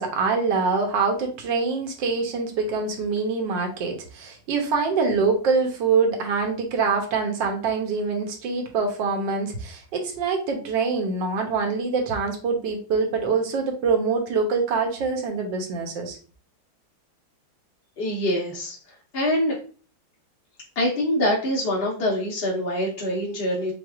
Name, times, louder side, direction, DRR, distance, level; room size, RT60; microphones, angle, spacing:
voice 1, 0.0-16.2, right 4 dB, 65° right, 3 dB, 1.5 m, -24 dB
voice 2, 18.0-18.8 19.1-19.6 20.8-23.7, left 1 dB, 60° left, -3 dB, 0.6 m, -24 dB
6.0 x 2.3 x 2.3 m, 0.39 s
omnidirectional pair, 2.3 m